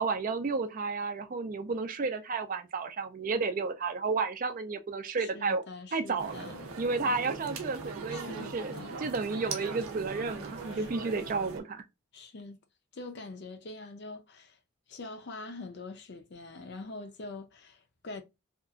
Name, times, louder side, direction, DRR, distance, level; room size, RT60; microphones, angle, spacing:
voice 1, 0.0-5.6 5.9-6.4 6.8-11.8, right 4 dB, 40° right, 0.4 m, -32 dB
voice 2, 5.2-6.7 8.1-9.0 10.7-10.9 12.1-12.6 12.9-14.6 14.9-18.2, left 3 dB, 50° left, 0.5 m, -44 dB
sound 1, 6.2-11.6, right 4 dB, 85° right, 0.6 m, -40 dB
2.8 x 2.4 x 2.3 m
head